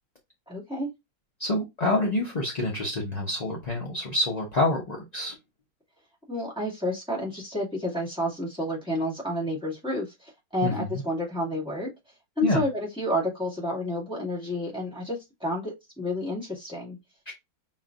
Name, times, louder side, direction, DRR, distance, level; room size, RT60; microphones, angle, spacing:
voice 1, 0.5-0.9 6.3-11.9 12.4-17.0, left 1 dB, 5° right, 2.2 m, -30 dB
voice 2, 1.4-5.3 10.6-11.0 12.4-12.6 17.3-17.4, left 2 dB, 40° left, 0.5 m, -27 dB
5.9 x 3.2 x 2.5 m
omnidirectional pair, 2.0 m